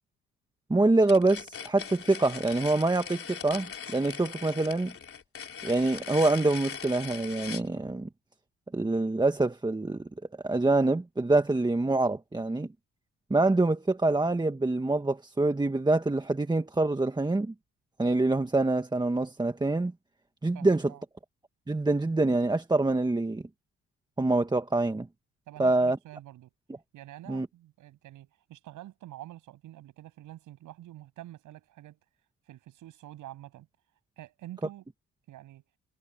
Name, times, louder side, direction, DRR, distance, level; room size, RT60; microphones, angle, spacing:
voice 1, 0.7-4.9 5.6-8.1 8.7-10.0 10.4-12.7 13.3-17.5 18.0-19.9 20.4-20.9 21.7-23.4 24.2-25.1 25.6-26.0 27.3-27.5, right 2 dB, 15° right, 1.5 m, -25 dB
sound 1, 1.0-7.7, left 7 dB, 45° left, 3.5 m, -40 dB
voice 2, 20.5-21.0 25.5-26.5 26.9-32.0 32.5-33.7 34.2-34.8 35.3-35.7, right 14 dB, 85° right, 7.3 m, -47 dB
cardioid pair, 90°, 30 cm